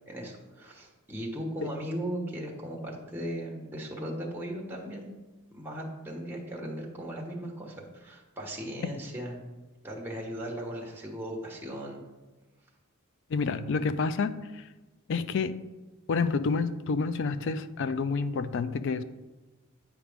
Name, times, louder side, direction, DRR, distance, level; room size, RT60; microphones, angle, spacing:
voice 1, 0.1-5.1 5.5-9.4 9.8-12.0, equal, 10° right, -2 dB, 1.2 m, -37 dB
voice 2, 13.3-14.6 15.1-15.5 16.1-19.0, left 4 dB, 60° left, 13 dB, 0.4 m, -29 dB
8.6 x 4.9 x 3.5 m, 1.2 s
head